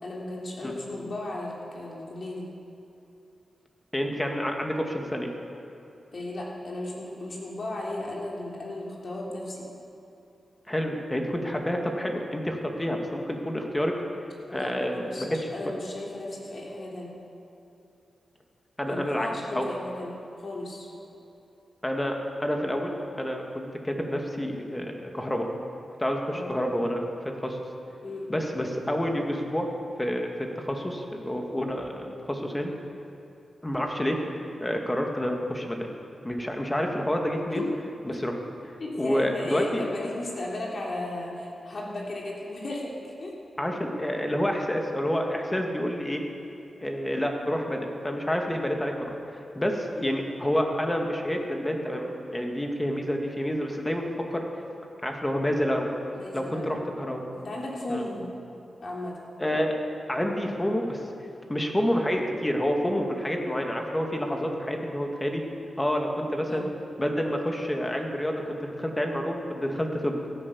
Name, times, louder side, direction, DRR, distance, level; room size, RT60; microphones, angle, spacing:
voice 1, 0.0-2.5 6.1-9.7 14.5-17.1 18.9-20.1 20.4-20.9 26.3-26.7 28.0-28.3 37.5-37.8 38.8-43.3 50.0-50.1 56.1-56.8 57.3-58.3 58.8-59.2 66.4-66.7, left 1 dB, 55° left, -3 dB, 3.5 m, -35 dB
voice 2, 3.9-5.3 10.7-13.9 14.5-15.3 18.8-19.3 19.5-19.6 21.8-25.5 26.0-27.0 27.4-27.6 28.3-29.7 30.0-32.7 33.6-35.9 36.2-37.6 38.1-38.4 38.6-39.8 43.6-46.2 46.8-54.4 55.0-55.9 56.3-57.2 57.9-58.0 59.4-59.8 60.1-61.0 61.5-65.4 65.8-66.7 67.0-70.2, equal, 15° left, 2 dB, 2.2 m, -28 dB
16.0 x 10.0 x 7.2 m, 2.9 s
cardioid pair, 65°, 0 cm